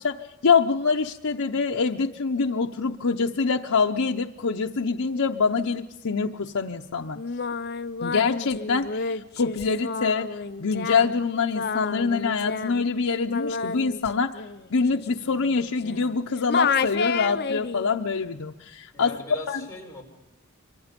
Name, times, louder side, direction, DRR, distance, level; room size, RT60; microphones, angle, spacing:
voice 1, 0.0-7.2 8.0-10.3 10.6-14.4 14.7-19.6, left 5 dB, 80° left, 2 dB, 0.7 m, -25 dB
Singing, 7.2-16.2 16.5-17.9, left 5 dB, 50° left, 0.7 m, -30 dB
voice 2, 18.9-20.0, left 2 dB, 15° left, -1 dB, 4.4 m, -39 dB
25.0 x 23.5 x 5.2 m, 1.0 s
head